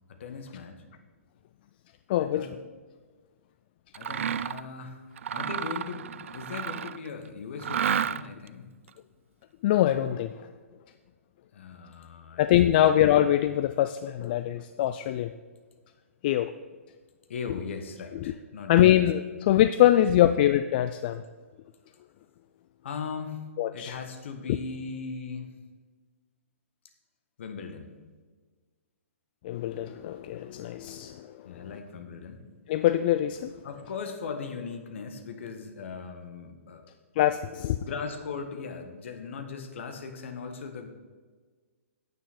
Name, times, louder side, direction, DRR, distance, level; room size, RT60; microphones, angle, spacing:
voice 1, 0.2-0.8 2.2-2.5 3.9-8.7 11.5-12.4 17.3-19.0 19.3-19.4 20.2-20.3 22.8-25.5 27.4-28.0 30.9-31.1 31.4-32.4 33.6-36.9 37.8-40.9, left 5 dB, 55° left, 5 dB, 1.5 m, -39 dB
voice 2, 2.1-2.5 9.6-10.5 12.4-15.3 16.2-16.5 18.2-18.3 18.7-21.2 23.6-24.0 29.4-31.7 32.7-33.5 37.2-37.8, left 12 dB, 40° left, 11 dB, 0.4 m, -23 dB
Mechanisms, 3.9-4.7 5.2-7.1 7.6-8.5, right 8 dB, 60° right, 0.3 m, -31 dB
9.1 x 9.1 x 4.3 m, 1.5 s
figure-of-eight pair, 120°, 8 cm